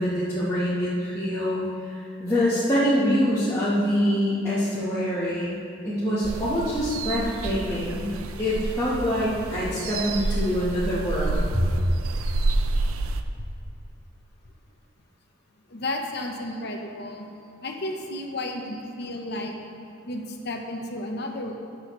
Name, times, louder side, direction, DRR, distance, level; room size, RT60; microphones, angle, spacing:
voice 1, 0.0-5.5 5.8-11.6, equal, 15° left, -11 dB, 1.3 m, -25 dB
sound 1, 6.2-13.2, right 2 dB, 90° right, 0.5 m, -29 dB
voice 2, 15.7-17.3 17.6-19.5 20.1-21.5, left 1 dB, 50° left, 3 dB, 0.9 m, -32 dB
15.5 x 6.4 x 3.1 m, 2.5 s
head